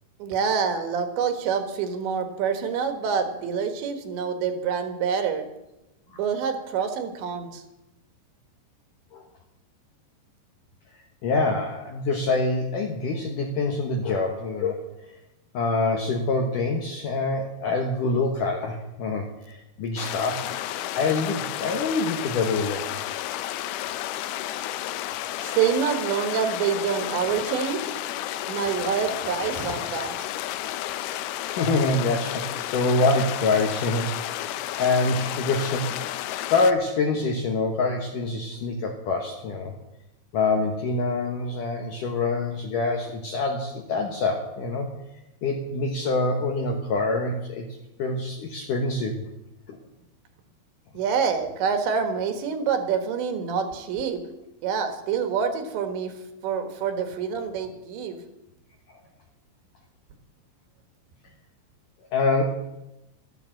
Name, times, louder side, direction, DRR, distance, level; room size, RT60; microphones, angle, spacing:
voice 1, 0.2-5.5 6.2-7.6 25.4-27.9 28.5-30.3 51.0-54.2 54.6-56.1 56.4-58.2, right 6 dB, 75° right, 7 dB, 3.7 m, -26 dB
voice 2, 11.2-14.9 15.5-20.6 21.0-23.2 31.5-34.2 34.4-35.9 36.5-39.7 40.3-44.9 45.4-47.7 48.0-49.2 49.7-49.8 62.1-62.4, left 3 dB, 70° left, 2 dB, 2.1 m, -25 dB
sound 1, 20.0-36.7, left 13 dB, 90° left, 2.2 m, -32 dB
13.0 x 12.5 x 7.7 m, 0.93 s
omnidirectional pair, 5.4 m